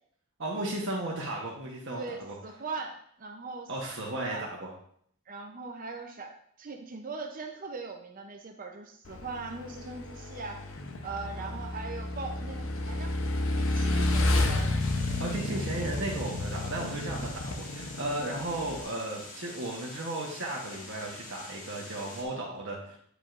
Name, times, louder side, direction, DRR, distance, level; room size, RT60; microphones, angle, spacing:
voice 1, 0.4-2.3 3.7-4.7 11.1-11.6 13.8-14.0 15.2-23.0, right 1 dB, 55° right, -3 dB, 1.0 m, -35 dB
voice 2, 2.0-3.7 4.2-4.4 5.3-10.6 11.0-13.2 13.6-14.8, right 4 dB, 40° right, 3 dB, 0.6 m, -40 dB
Motorcycle / Engine, 9.1-18.8, left 2 dB, 60° left, 0.7 m, -31 dB
sound 1, 14.8-22.2, left 2 dB, 35° left, 1.3 m, -46 dB
9.0 x 4.9 x 2.5 m, 0.65 s
head